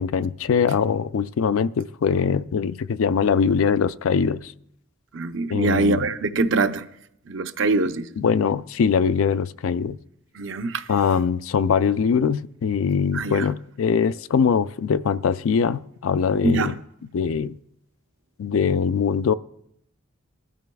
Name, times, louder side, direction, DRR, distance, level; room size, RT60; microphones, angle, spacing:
voice 1, 0.0-4.5 5.5-6.1 8.2-10.0 10.9-16.7 17.1-17.5 18.4-19.3, left 6 dB, 75° left, 0.4 m, -22 dB
voice 2, 5.1-6.8 7.3-8.3 10.3-10.9 13.1-13.5 16.4-16.7, right 3 dB, 60° right, 0.6 m, -23 dB
19.5 x 12.5 x 2.3 m
head